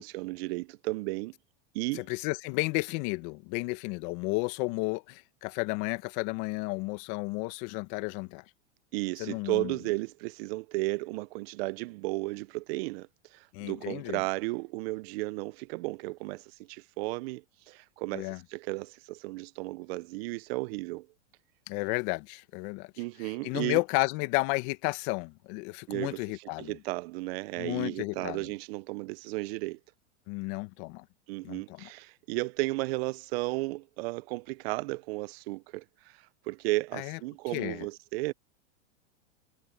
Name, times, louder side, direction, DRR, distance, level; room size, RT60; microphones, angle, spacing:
voice 1, 0.0-1.3 1.7-2.0 8.9-21.1 23.0-23.8 25.9-29.8 31.3-38.3, right 22 dB, 55° right, 0.6 m, -34 dB
voice 2, 1.9-8.4 9.2-9.7 13.5-14.2 18.1-18.4 21.7-22.9 23.2-26.8 27.6-28.5 30.3-31.0 31.4-31.9 36.9-37.2 37.5-37.9, left 25 dB, 50° left, 1.5 m, -32 dB
hypercardioid pair, 120°, 36 cm